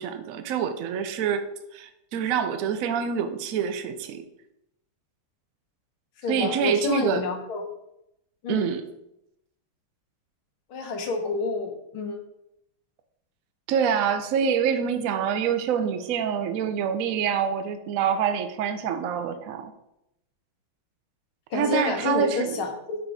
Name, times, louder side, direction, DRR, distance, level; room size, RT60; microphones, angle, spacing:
voice 1, 0.0-1.5 1.7-4.2 6.3-7.3 8.5-8.8 13.7-19.7 21.5-22.6, right 8 dB, 85° right, 8 dB, 0.7 m, -26 dB
voice 2, 6.2-7.6 8.4-8.7 10.7-12.2 21.5-23.0, left 4 dB, 85° left, 4 dB, 1.8 m, -28 dB
5.6 x 4.1 x 4.9 m, 0.82 s
omnidirectional pair, 2.2 m